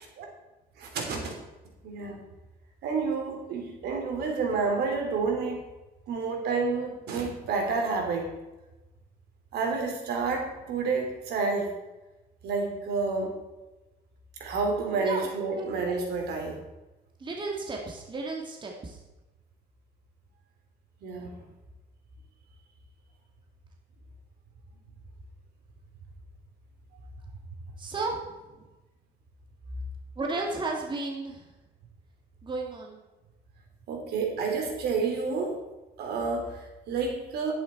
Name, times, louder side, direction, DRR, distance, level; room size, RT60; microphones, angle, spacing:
voice 1, 0.8-1.3 1.8-2.2 2.8-5.6 6.1-8.3 9.5-11.7 12.4-13.4 14.4-16.6 21.0-21.4 33.9-35.6 36.0-37.5, right 4 dB, 70° right, 2 dB, 3.3 m, -29 dB
voice 2, 17.2-19.0 27.8-28.3 30.2-31.4 32.4-33.0, right 3 dB, 30° right, 0 dB, 2.2 m, -33 dB
11.0 x 10.0 x 4.5 m, 1.1 s
cardioid pair, 110°, 17 cm